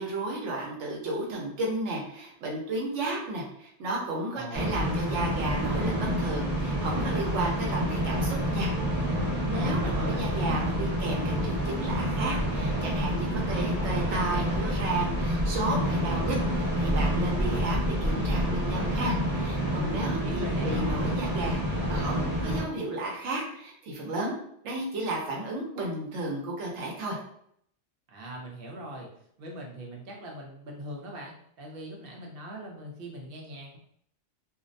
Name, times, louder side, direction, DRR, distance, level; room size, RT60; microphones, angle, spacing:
voice 1, 0.0-8.7 9.4-24.3 24.6-27.2, right 2 dB, 80° right, -2 dB, 1.0 m, -33 dB
voice 2, 4.3-4.7 9.5-10.3 20.0-20.8 28.1-29.1 29.4-33.8, right 1 dB, 60° right, 0 dB, 0.8 m, -40 dB
sound 1, 4.6-22.6, equal, 20° right, 1.0 m, -28 dB
2.5 x 2.0 x 2.5 m, 0.68 s
omnidirectional pair, 1.2 m